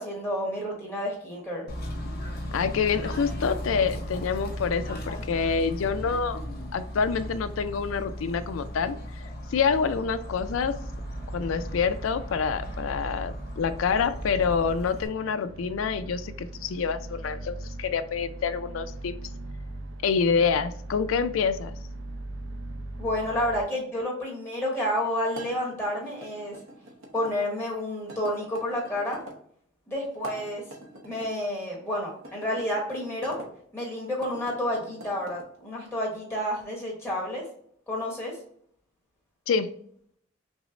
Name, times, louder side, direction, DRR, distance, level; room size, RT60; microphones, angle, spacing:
voice 1, 0.0-1.7 23.0-26.6 27.1-29.2 29.9-30.6 31.0-33.4 33.7-37.4 37.9-38.4, left 1 dB, 10° left, -3 dB, 1.1 m, -30 dB
Bird / Train, 1.7-15.1, equal, 50° left, 0.8 m, -37 dB
voice 2, 2.5-6.4 6.7-9.0 9.5-10.7 11.3-19.1 20.0-21.7 39.5-39.7, left 5 dB, 80° left, 12 dB, 0.4 m, -27 dB
sound 1, 10.3-23.6, right 1 dB, 60° right, 0.4 m, -39 dB
sound 2, 25.3-27.3 28.1-29.4 30.1-31.3 32.2-33.5 34.1-35.5, right 1 dB, 80° right, 0.8 m, -44 dB
6.0 x 2.1 x 2.5 m, 0.63 s
head